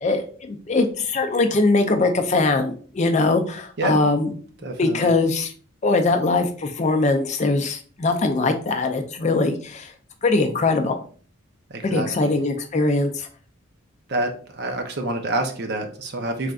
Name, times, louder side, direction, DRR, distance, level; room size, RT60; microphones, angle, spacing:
voice 1, 0.0-4.3 4.8-5.5 5.8-9.9 10.2-11.0 11.8-13.3, left 3 dB, 35° left, 5 dB, 0.4 m, -21 dB
voice 2, 4.6-5.1 11.7-12.3 14.1-16.5, right 2 dB, 55° right, 5 dB, 0.6 m, -27 dB
3.8 x 3.3 x 2.3 m, 0.43 s
head